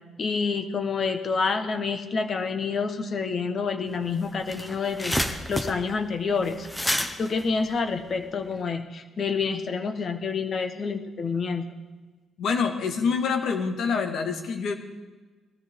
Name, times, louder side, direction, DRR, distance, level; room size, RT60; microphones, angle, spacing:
voice 1, 0.2-6.7 7.2-11.7, left 5 dB, 50° left, 7 dB, 1.5 m, -28 dB
sound 1, 3.9-4.0 4.3-8.5, left 1 dB, 10° left, 1.2 m, -30 dB
voice 2, 12.4-14.7, left 5 dB, 75° left, 4 dB, 1.9 m, -26 dB
19.5 x 13.5 x 3.8 m, 1.3 s
cardioid pair, 90°, 0 cm